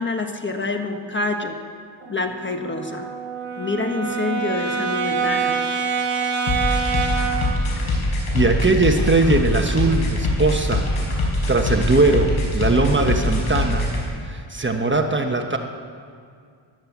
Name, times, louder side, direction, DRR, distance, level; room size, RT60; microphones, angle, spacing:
voice 1, 0.0-1.6 2.1-3.1 3.6-5.6, left 3 dB, 25° left, 5 dB, 1.2 m, -26 dB
Brass instrument, 2.0-7.6, right 6 dB, 70° right, 2.1 m, -25 dB
sound 1, 6.5-14.0, left 2 dB, 85° left, 4.9 m, -22 dB
voice 2, 8.3-10.9 11.5-13.9 14.2-15.6, right 3 dB, 25° right, 4 dB, 1.1 m, -20 dB
15.0 x 11.5 x 7.2 m, 2.2 s
wide cardioid pair, 95°, 48 cm